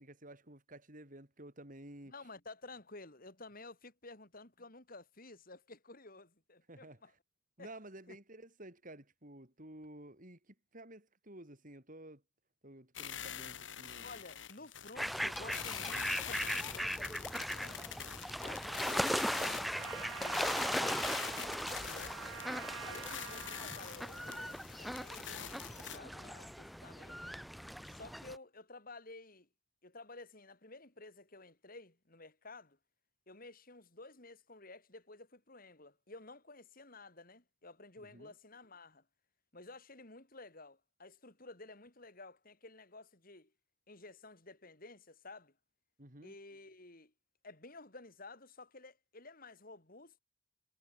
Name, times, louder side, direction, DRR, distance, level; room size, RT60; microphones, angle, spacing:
voice 1, 0.0-2.1 6.7-7.0 7.6-12.2 12.6-14.2 14.9-15.0 38.0-38.3 46.0-46.4, right 1 dB, 40° right, 5.6 m, -53 dB
voice 2, 2.1-7.1 7.6-7.7 8.1-8.2 14.0-19.8 20.2-22.3 22.8-27.3 27.9-29.5 29.8-32.8 33.3-39.0 39.5-43.5 43.9-45.5 46.2-47.1 47.4-50.2, left 3 dB, 45° left, 4.1 m, -53 dB
sound 1, 13.0-26.0, left 9 dB, 65° left, 2.8 m, -45 dB
sound 2, 15.0-28.4, equal, ahead, 0.6 m, -38 dB
Trumpet, 19.7-24.0, right 7 dB, 70° right, 0.8 m, -47 dB
head